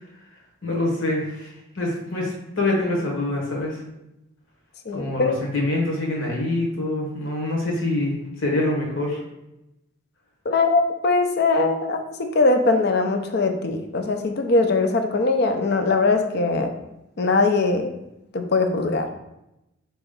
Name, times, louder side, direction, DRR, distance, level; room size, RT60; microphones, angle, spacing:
voice 1, 0.6-3.8 4.9-9.2, left 2 dB, 65° left, -1 dB, 1.2 m, -25 dB
voice 2, 4.9-5.3 10.5-16.7 17.2-17.9 18.3-19.1, left 3 dB, 50° left, 6 dB, 0.5 m, -21 dB
4.4 x 3.0 x 3.7 m, 0.90 s
head